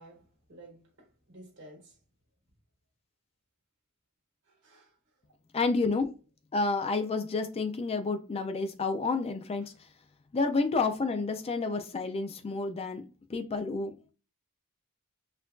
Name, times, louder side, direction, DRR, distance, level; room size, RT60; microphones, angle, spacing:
voice 1, 0.0-2.0 4.5-4.9, right 1 dB, 55° right, 1.6 m, -53 dB
voice 2, 5.5-6.2 6.5-9.9 10.3-14.1, left 3 dB, 25° left, 0.4 m, -30 dB
4.3 x 2.6 x 2.3 m
head